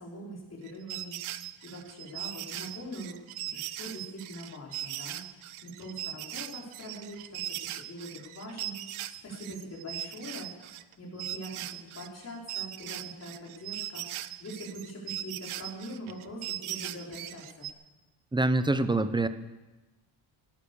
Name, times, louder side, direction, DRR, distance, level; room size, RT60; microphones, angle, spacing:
voice 1, 0.0-3.2 3.4-10.5 11.0-17.7, equal, 30° left, -2 dB, 4.5 m, -43 dB
sound 1, 0.7-10.9 11.2-17.7, right 13 dB, 80° right, 0.8 m, -39 dB
voice 2, 18.3-19.3, right 2 dB, 10° right, 12 dB, 0.6 m, -25 dB
16.5 x 11.5 x 6.9 m, 1.1 s
cardioid pair, 145°, 48 cm